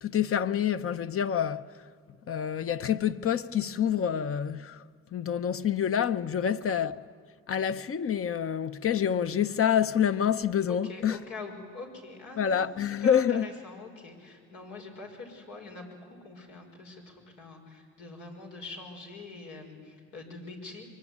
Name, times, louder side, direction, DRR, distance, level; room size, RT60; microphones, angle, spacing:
voice 1, 0.0-1.8 2.3-4.8 5.1-7.0 7.5-11.2 12.4-13.5, left 8 dB, 45° left, 0.9 m, -27 dB
voice 2, 6.4-6.8 10.7-20.9, left 3 dB, 85° left, 5.9 m, -44 dB
24.5 x 23.5 x 9.7 m
cardioid pair, 90°, 30 cm